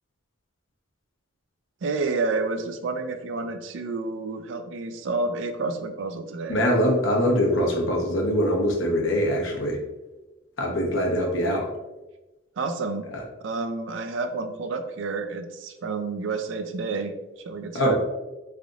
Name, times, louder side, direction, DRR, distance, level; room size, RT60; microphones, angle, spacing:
voice 1, 1.8-6.6 12.6-13.1 13.4-17.1 17.5-18.0, right 3 dB, 75° right, 7 dB, 0.4 m, -29 dB
voice 2, 6.5-9.8 10.6-11.7 13.1-13.2 17.7-18.0, equal, 80° left, 0 dB, 0.9 m, -23 dB
3.8 x 3.4 x 2.4 m, 1.1 s
head